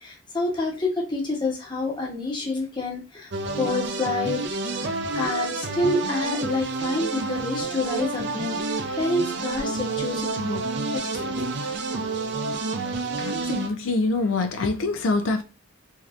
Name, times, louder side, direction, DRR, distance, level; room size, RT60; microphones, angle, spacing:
voice 1, 0.0-3.3 3.6-4.4 4.8-10.6 10.9-11.6, left 2 dB, 25° left, 0.8 m, -28 dB
sound 1, 3.3-13.7, right 3 dB, 55° right, 0.4 m, -29 dB
voice 2, 13.2-15.4, left 3 dB, 80° left, 0.4 m, -25 dB
3.3 x 2.7 x 2.4 m
head